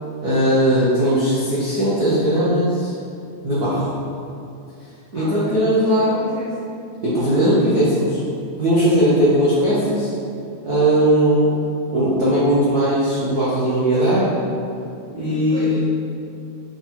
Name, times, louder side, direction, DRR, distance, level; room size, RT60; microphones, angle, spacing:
voice 1, 0.2-2.9 3.4-3.9 5.1-6.2 7.0-8.2 8.6-10.1 10.6-11.5 11.9-14.3 15.1-15.7, right 1 dB, 80° right, -10 dB, 0.8 m, -18 dB
voice 2, 5.1-6.8 15.3-15.9, left 1 dB, 85° left, -11 dB, 0.6 m, -34 dB
6.7 x 3.8 x 4.4 m, 2.6 s
omnidirectional pair, 3.6 m